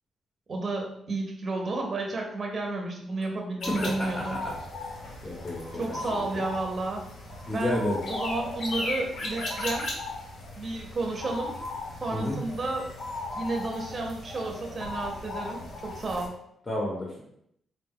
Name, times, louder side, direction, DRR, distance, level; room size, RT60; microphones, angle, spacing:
voice 1, 0.5-4.4 5.7-7.0 7.5-9.9 10.5-11.5 12.0-12.9 13.4-16.3, right 2 dB, 30° right, 1 dB, 0.6 m, -32 dB
sound 1, 3.6-16.3, left 2 dB, 55° left, 0.8 m, -36 dB
voice 2, 3.8-4.4 5.2-6.2 7.5-8.0 12.1-12.4 16.7-17.2, left 1 dB, 20° left, -3 dB, 0.8 m, -31 dB
3.9 x 2.2 x 3.4 m, 0.74 s
cardioid pair, 155°, 0 cm